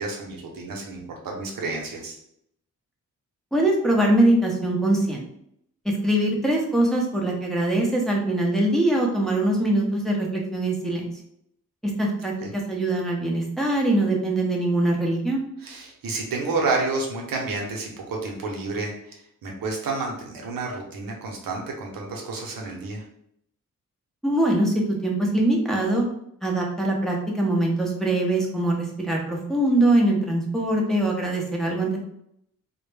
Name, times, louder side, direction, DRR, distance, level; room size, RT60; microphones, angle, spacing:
voice 1, 0.0-2.2 12.4-12.5 15.6-23.0, right 3 dB, 80° right, 0 dB, 0.7 m, -30 dB
voice 2, 3.5-5.3 5.8-11.1 12.0-15.4 24.2-24.7 25.0-26.0 26.4-32.0, right 1 dB, ahead, -2 dB, 0.6 m, -22 dB
2.1 x 2.0 x 3.1 m, 0.73 s
cardioid pair, 55°, 33 cm